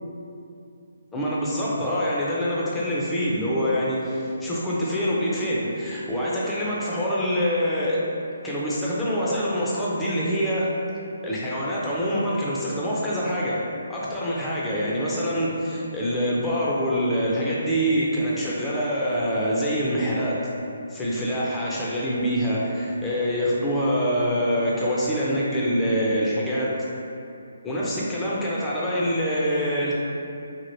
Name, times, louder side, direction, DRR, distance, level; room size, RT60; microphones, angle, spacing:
voice 1, 1.1-8.0 8.4-10.7 11.2-13.6 13.9-20.4 20.9-26.7 27.6-29.9, equal, 10° left, -7 dB, 0.5 m, -25 dB
2.9 x 2.7 x 2.6 m, 2.6 s
figure-of-eight pair, 150°, 0 cm